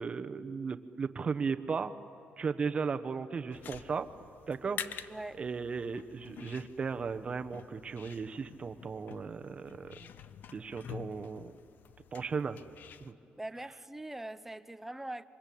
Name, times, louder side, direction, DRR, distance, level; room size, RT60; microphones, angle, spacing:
voice 1, 0.0-1.9 2.4-4.1 4.5-5.1 5.4-9.9 10.5-11.5 12.1-12.6 13.0-13.1, right 5 dB, 30° right, 9 dB, 1.1 m, -36 dB
sound 1, 3.5-13.1, left 9 dB, 60° left, 0.8 m, -48 dB
voice 2, 5.1-5.4 13.4-15.2, right 1 dB, 5° right, 13 dB, 0.7 m, -42 dB
27.5 x 25.0 x 8.6 m, 2.7 s
cardioid pair, 140°, 4 cm